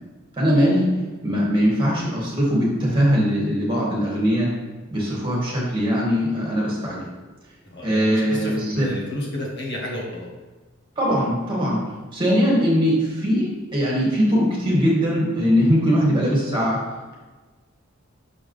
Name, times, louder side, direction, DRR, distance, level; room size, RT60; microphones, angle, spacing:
voice 1, 0.4-0.9 1.2-4.5 4.9-7.0 7.8-8.9 11.0-11.8 12.1-16.8, equal, 25° right, -4 dB, 2.2 m, -21 dB
voice 2, 7.6-10.3, left 1 dB, 55° left, -2 dB, 1.5 m, -31 dB
6.1 x 5.5 x 3.4 m, 1.3 s
head